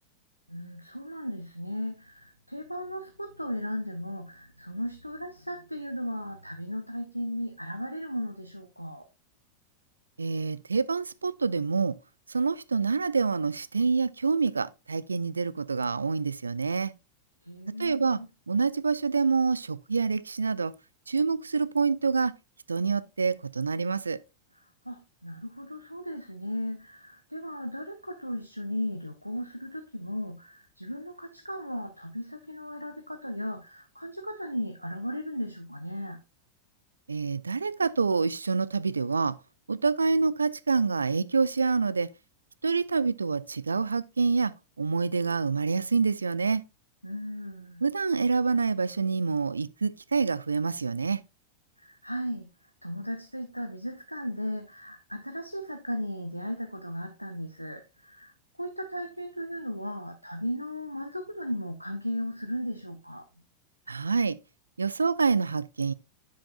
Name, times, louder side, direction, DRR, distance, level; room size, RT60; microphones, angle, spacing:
voice 1, 0.5-9.1 17.4-18.3 24.5-36.2 47.0-47.8 51.8-52.5 52.8-58.3 58.6-63.3, equal, 90° left, 0.5 m, -36 dB
voice 2, 10.2-12.0 12.3-16.9 17.8-18.2 18.5-20.7 21.1-22.3 22.7-24.2 37.1-39.4 39.7-42.1 42.6-44.5 44.8-46.6 47.8-51.2 63.9-64.4 64.8-65.9, right 4 dB, 75° right, 0.3 m, -27 dB
7.6 x 7.0 x 2.4 m
figure-of-eight pair, 90°, 0 cm